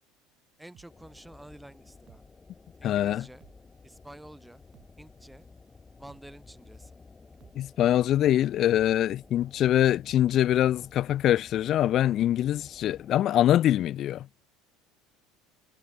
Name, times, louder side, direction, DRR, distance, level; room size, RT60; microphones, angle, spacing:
voice 1, 0.6-2.2 2.8-3.4 3.8-4.6 5.0-5.4 6.0-7.0, right 1 dB, 5° right, 3.0 m, -49 dB
sound 1, 0.7-3.0 3.3-11.0 11.3-11.4, right 12 dB, 45° right, 2.7 m, -61 dB
sound 2, 0.9-13.2, left 4 dB, 20° left, 3.2 m, -54 dB
voice 2, 2.8-3.2 7.6-14.3, left 12 dB, 45° left, 0.4 m, -24 dB
figure-of-eight pair, 70°, 0 cm